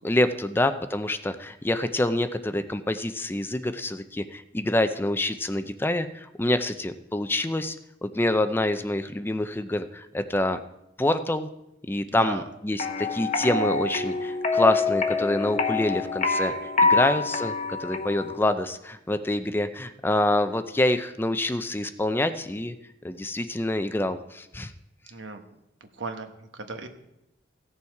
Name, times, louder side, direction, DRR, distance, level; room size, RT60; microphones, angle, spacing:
voice 1, 0.0-7.8 8.0-10.6 11.0-11.5 11.8-16.5 16.8-22.7 23.0-24.7, left 1 dB, 10° left, 10 dB, 0.5 m, -26 dB
voice 2, 12.1-12.5 17.1-17.2 25.1-25.4 25.8-26.9, right 3 dB, 80° right, 6 dB, 1.2 m, -37 dB
sound 1, 12.8-18.4, left 3 dB, 40° left, 0.9 m, -26 dB
16.0 x 7.0 x 4.7 m, 0.86 s
head